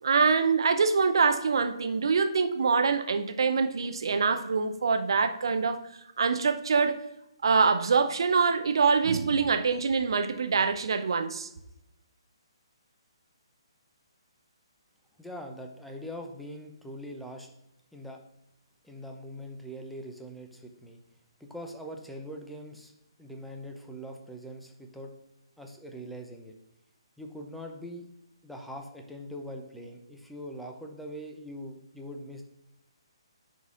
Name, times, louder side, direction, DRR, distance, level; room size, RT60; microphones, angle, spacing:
voice 1, 0.0-5.8 6.2-7.0 7.4-11.5, right 5 dB, 60° right, 0.6 m, -25 dB
voice 2, 15.2-17.5 17.9-18.2 18.8-21.0 21.4-22.9 23.2-25.1 25.6-26.5 27.2-28.0 28.4-32.4, equal, ahead, 0.6 m, -42 dB
10.5 x 4.1 x 2.5 m
figure-of-eight pair, 135°, 3 cm